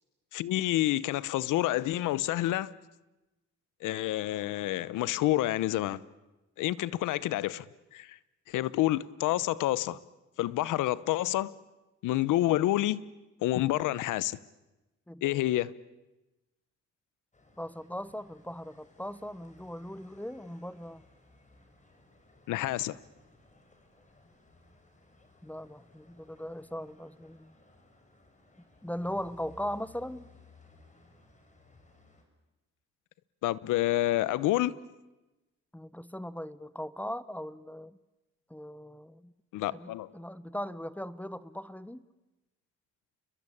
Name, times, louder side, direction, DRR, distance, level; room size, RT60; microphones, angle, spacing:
voice 1, 0.3-2.7 3.8-6.0 6.6-7.6 7.9-8.2 8.5-10.0 10.4-11.5 12.0-13.0 13.4-14.4 15.2-15.7 22.5-23.0 33.4-34.7 39.5-40.1, left 15 dB, 90° left, 1.0 m, -28 dB
voice 2, 15.1-15.4 17.6-21.1 25.4-27.5 28.8-30.3 35.7-38.0 38.5-39.3 39.7-42.0, equal, 5° left, 1.0 m, -39 dB
sound 1, 17.3-32.2, left 2 dB, 25° left, 5.9 m, -60 dB
29.0 x 22.0 x 8.7 m
cardioid pair, 90°, 30 cm